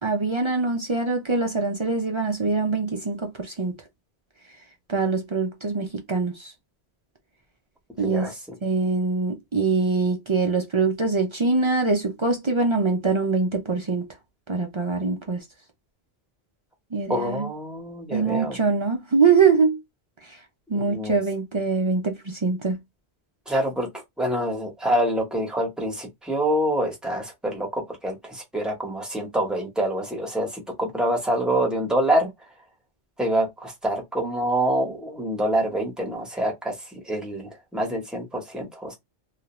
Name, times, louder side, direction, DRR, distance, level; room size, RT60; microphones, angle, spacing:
voice 1, 0.0-3.7 4.9-6.5 8.0-8.3 8.6-14.1 14.5-15.4 16.9-17.5 18.1-19.8 20.7-22.8, right 4 dB, 50° right, 0.3 m, -23 dB
voice 2, 8.0-8.4 17.1-18.6 20.7-21.2 23.5-23.9 24.2-32.3 33.2-38.9, right 1 dB, ahead, 0.7 m, -26 dB
2.4 x 2.1 x 2.9 m
omnidirectional pair, 1.1 m